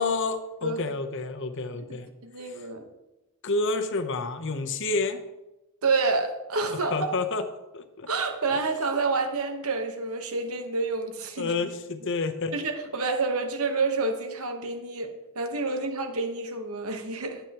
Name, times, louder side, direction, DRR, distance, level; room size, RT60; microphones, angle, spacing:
voice 1, 0.0-2.1 3.4-5.2 6.6-7.4 7.7-8.1 11.4-12.5, left 3 dB, 55° left, 8 dB, 0.9 m, -29 dB
voice 2, 1.7-2.9 5.8-7.1 8.1-11.5 12.5-17.4, right 3 dB, 75° right, 6 dB, 1.2 m, -28 dB
12.5 x 8.1 x 3.0 m, 1.0 s
head